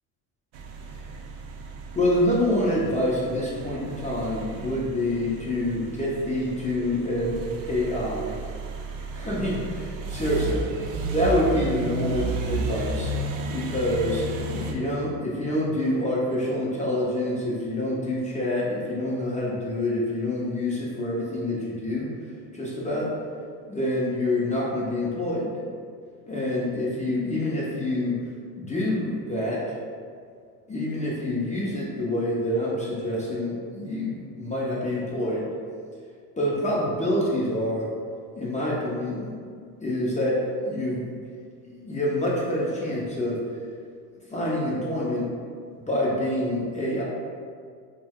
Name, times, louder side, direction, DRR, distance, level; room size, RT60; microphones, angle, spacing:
sound 1, 0.5-14.7, right 2 dB, 65° right, 0.5 m, -33 dB
voice 1, 1.9-8.3 9.1-10.7 11.1-13.1 13.5-14.2 14.5-22.1 22.5-23.1 23.7-25.5 26.3-28.2 28.6-29.8 30.7-35.5 36.4-37.9 38.3-39.4 39.8-40.4 40.6-41.1 41.7-43.4 44.3-45.3 45.9-47.0, left 1 dB, 15° left, -6 dB, 0.4 m, -26 dB
2.6 x 2.1 x 3.4 m, 2.1 s
supercardioid pair, 85°, 48 cm